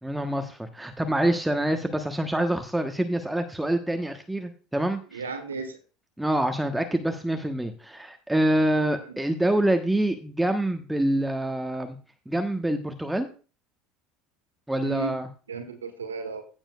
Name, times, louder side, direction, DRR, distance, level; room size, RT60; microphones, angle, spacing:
voice 1, 0.0-5.2 6.2-12.0 12.3-13.3 14.7-15.3, right 1 dB, 5° right, 6 dB, 1.1 m, -26 dB
voice 2, 5.1-5.8 9.0-9.2 14.8-15.1 15.5-16.4, right 4 dB, 75° right, 7 dB, 1.2 m, -34 dB
16.5 x 7.2 x 2.4 m, 0.35 s
figure-of-eight pair, 70°, 0 cm